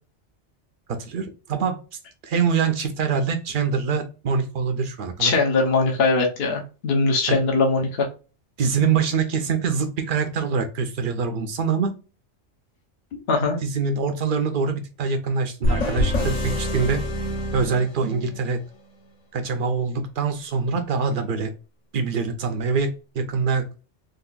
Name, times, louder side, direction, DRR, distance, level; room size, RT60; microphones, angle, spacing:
voice 1, 0.9-1.8 2.2-5.4 7.3-7.4 8.6-11.9 13.6-17.0 17.5-18.7 19.3-21.5 21.9-23.7, right 5 dB, 60° right, 0.6 m, -24 dB
voice 2, 5.2-8.1 13.3-13.6, left 3 dB, 65° left, 1.0 m, -21 dB
sound 1, 15.6-18.4, left 1 dB, 40° left, 0.7 m, -25 dB
3.8 x 2.4 x 2.3 m
omnidirectional pair, 1.2 m